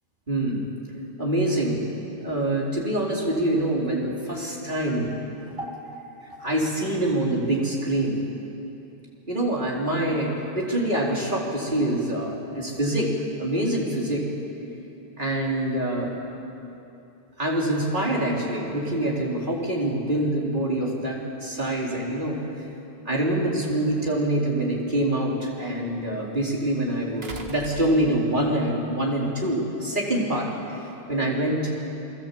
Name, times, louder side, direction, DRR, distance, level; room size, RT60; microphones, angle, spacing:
voice 1, 0.3-0.7 1.2-1.8 2.2-5.1 5.6-6.0 6.4-8.3 9.3-13.1 13.4-14.3 15.2-16.2 17.4-22.4 23.1-30.5 31.1-31.7, right 1 dB, 50° right, -3 dB, 4.3 m, -25 dB
sound 1, 23.9-24.0 27.2-28.5 29.9-30.0, right 4 dB, 70° right, 1.9 m, -40 dB
29.0 x 22.0 x 8.5 m, 2.9 s
omnidirectional pair, 1.0 m